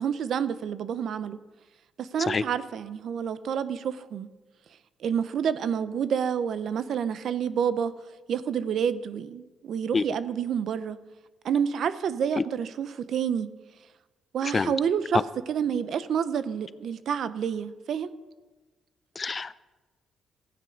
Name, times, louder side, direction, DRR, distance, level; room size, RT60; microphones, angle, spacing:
voice 1, 0.0-1.4 2.0-4.3 5.0-7.9 8.3-11.0 11.4-13.5 14.3-18.1, right 7 dB, 65° right, 14 dB, 0.7 m, -28 dB
voice 2, 19.2-19.6, left 4 dB, 35° left, 17 dB, 0.4 m, -26 dB
15.0 x 9.5 x 5.2 m, 1.2 s
cardioid pair, 90°, 0 cm